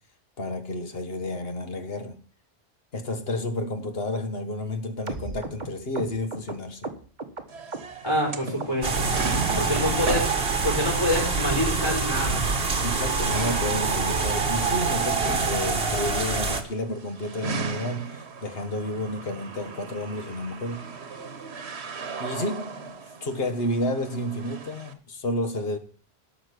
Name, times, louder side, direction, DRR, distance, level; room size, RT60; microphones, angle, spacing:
voice 1, 0.4-2.2 2.9-6.9 9.5-10.0 12.8-21.0 22.2-22.8 23.2-25.8, left 1 dB, 65° left, 1.8 m, -31 dB
sound 1, 5.1-8.3 8.6-9.2 9.5-10.1 10.4-10.5 10.7-10.9 11.2-11.3 11.6-11.8 12.1-12.2 12.5-12.7 13.0-13.1 13.4-13.6 13.9-14.0 14.3-14.4 14.8-14.9, right 3 dB, 45° right, 1.7 m, -37 dB
sound 2, 7.5-24.9, right 4 dB, 85° right, 1.4 m, -38 dB
voice 2, 8.0-9.1 9.5-12.4, left 1 dB, 25° left, 4.4 m, -27 dB
sound 3, 8.8-16.6, right 4 dB, 60° right, 1.7 m, -25 dB
12.5 x 5.8 x 8.3 m
omnidirectional pair, 1.1 m